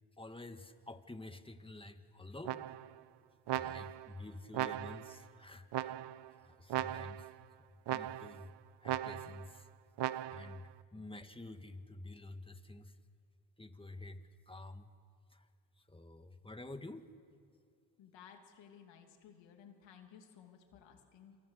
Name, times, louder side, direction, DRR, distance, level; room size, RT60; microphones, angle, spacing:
voice 1, 0.2-2.7 3.5-6.0 6.4-7.3 7.9-8.5 8.8-9.6 10.3-12.9 13.6-14.2 14.5-14.9 15.9-17.1, left 2 dB, 10° left, 8 dB, 1.9 m, -49 dB
sound 1, 2.4-3.0 3.5-4.1 4.5-5.2 5.7-6.3 6.7-7.3 7.9-8.5 8.9-9.5 10.0-10.6, right 12 dB, 70° right, 0.7 m, -38 dB
voice 2, 18.0-21.4, left 8 dB, 90° left, 4 dB, 3.0 m, -58 dB
28.0 x 28.0 x 6.7 m, 2.3 s
supercardioid pair, 65°, 43 cm